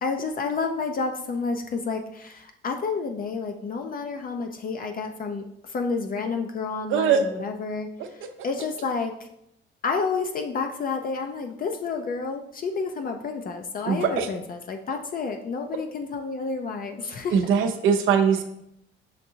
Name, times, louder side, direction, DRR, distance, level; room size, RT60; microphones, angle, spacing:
voice 1, 0.0-9.3 9.8-17.4, left 4 dB, 45° left, 5 dB, 0.4 m, -30 dB
voice 2, 13.9-14.3 17.3-18.4, right 7 dB, 85° right, 7 dB, 0.6 m, -21 dB
6.5 x 2.6 x 2.7 m, 0.77 s
cardioid pair, 90°, 20 cm